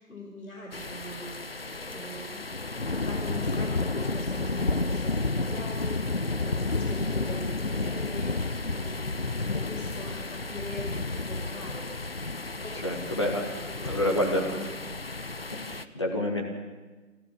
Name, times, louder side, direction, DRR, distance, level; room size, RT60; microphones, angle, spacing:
voice 1, 0.0-2.6 2.9-9.2 9.5-11.9 12.6-12.8 13.7-14.7, left 1 dB, 80° left, 0 dB, 5.1 m, -42 dB
sound 1, 0.7-15.8, left 3 dB, 45° left, 0.7 m, -31 dB
voice 2, 12.7-13.5 13.8-14.4 15.5-16.4, left 1 dB, 20° left, 0 dB, 1.9 m, -28 dB
26.5 x 14.5 x 7.4 m, 1.2 s
figure-of-eight pair, 175°, 41 cm